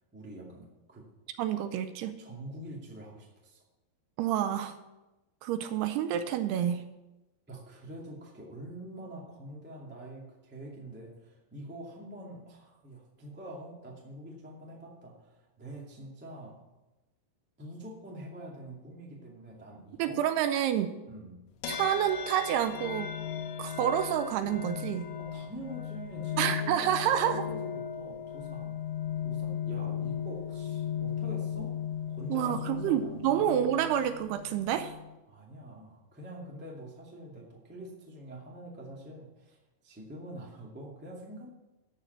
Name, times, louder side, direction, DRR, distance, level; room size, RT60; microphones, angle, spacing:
voice 1, 0.1-1.0 2.2-3.6 7.5-16.6 17.6-20.2 21.1-21.4 25.2-28.7 29.2-31.7 32.1-33.5 35.3-39.6 39.8-41.5, right 1 dB, 15° right, -3 dB, 0.4 m, -45 dB
voice 2, 1.4-2.2 4.2-4.8 5.4-6.9 20.0-21.0 21.7-23.1 23.6-25.1 26.4-27.5 32.3-34.9, right 10 dB, 80° right, 10 dB, 2.5 m, -28 dB
sound 1, 21.6-35.2, left 9 dB, 85° left, 3.1 m, -36 dB
13.0 x 5.1 x 7.8 m, 1.0 s
omnidirectional pair, 5.0 m